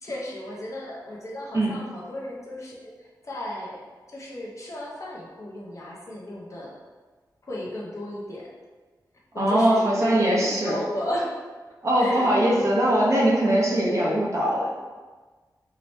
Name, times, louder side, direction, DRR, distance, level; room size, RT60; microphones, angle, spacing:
voice 1, 0.0-3.8 4.1-6.7 7.5-8.5 9.3-11.3 12.0-12.7, left 1 dB, 45° left, -4 dB, 0.7 m, -34 dB
voice 2, 9.3-10.8 11.8-14.6, right 1 dB, 45° right, -5 dB, 0.8 m, -21 dB
2.9 x 2.8 x 3.1 m, 1.4 s
wide cardioid pair, 110°, 7 cm